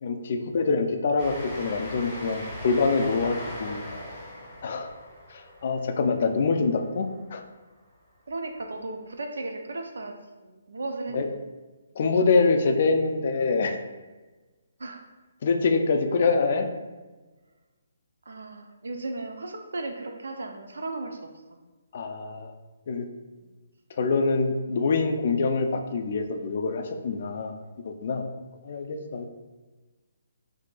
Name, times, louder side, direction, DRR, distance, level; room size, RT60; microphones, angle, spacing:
voice 1, 0.0-3.8 4.6-4.9 5.3-7.4 11.1-11.3 12.0-13.8 15.4-16.7 21.9-22.5 22.9-23.1 24.0-27.6 27.8-28.2 28.6-29.3, left 4 dB, 50° left, 6 dB, 0.3 m, -25 dB
Train, 1.2-7.3, left 1 dB, 10° left, 1.0 m, -40 dB
voice 2, 8.3-11.4 14.8-15.0 18.3-21.2 21.5-21.6, right 2 dB, 80° right, 4 dB, 0.4 m, -35 dB
3.7 x 2.7 x 2.3 m, 1.2 s
hypercardioid pair, 155°, 0 cm